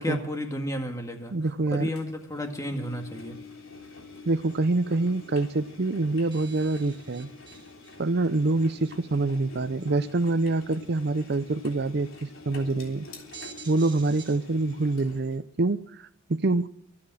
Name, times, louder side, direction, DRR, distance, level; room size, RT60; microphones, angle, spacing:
voice 1, 0.0-1.3 1.7-3.4, left 1 dB, 15° left, 2.0 m, -32 dB
voice 2, 1.3-1.9 4.2-7.3 8.0-13.1 13.7-16.7, right 2 dB, 50° right, 0.6 m, -26 dB
Engine, 2.0-15.4, left 3 dB, 80° left, 3.5 m, -46 dB
sound 1, 6.0-6.1 6.3-8.0 8.7-8.8 9.8-10.1 12.2-12.3 12.7-12.8 13.2-14.4, right 6 dB, 25° right, 2.0 m, -47 dB
24.0 x 8.8 x 6.2 m
head